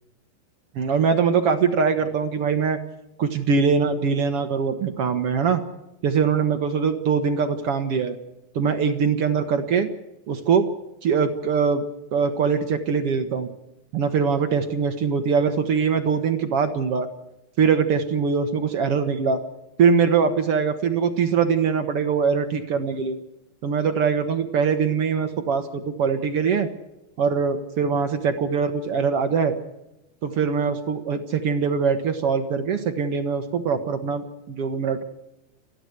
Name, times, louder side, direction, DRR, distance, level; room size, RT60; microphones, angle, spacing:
voice 1, 0.7-2.8 3.2-5.6 6.0-8.1 8.5-9.9 10.3-10.7 11.0-11.8 12.1-13.5 13.9-17.1 17.6-19.4 19.8-23.2 23.6-26.7 27.2-29.5 30.2-35.0, right 6 dB, 65° right, 7 dB, 1.5 m, -22 dB
29.5 x 11.0 x 8.0 m, 0.93 s
omnidirectional pair, 4.3 m